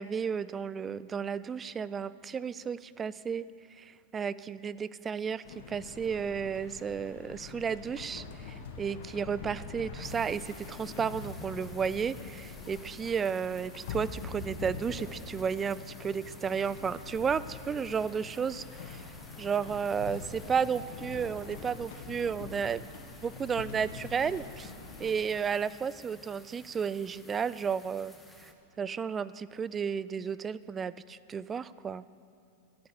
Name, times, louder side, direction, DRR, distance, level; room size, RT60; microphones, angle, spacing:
voice 1, 0.0-3.5 3.8-19.1 19.4-22.9 23.2-24.7 25.0-28.1 28.4-28.5 28.8-32.0, right 6 dB, 20° right, 18 dB, 0.3 m, -33 dB
sound 1, 5.4-25.2, left 4 dB, 70° left, 1.5 m, -44 dB
sound 2, 10.0-28.5, left 1 dB, 5° left, 1.1 m, -54 dB
12.0 x 8.8 x 6.9 m, 2.6 s
hypercardioid pair, 120°, 0 cm